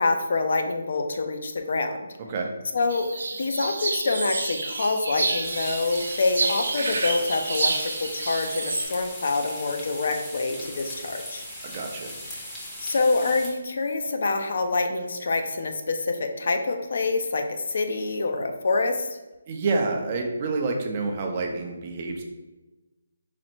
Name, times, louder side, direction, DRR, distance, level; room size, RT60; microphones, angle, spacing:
voice 1, 0.0-2.0 2.7-3.1 3.4-11.5 12.8-19.1, left 3 dB, 60° left, 6 dB, 0.4 m, -26 dB
sound 1, 2.9-8.8, right 3 dB, 75° right, 0.6 m, -29 dB
sound 2, 5.4-13.5, equal, 10° left, 0.7 m, -39 dB
voice 2, 11.6-12.2 19.5-22.2, right 3 dB, 35° right, 2 dB, 0.5 m, -28 dB
4.1 x 2.0 x 4.3 m, 1.1 s
hypercardioid pair, 165°, 0 cm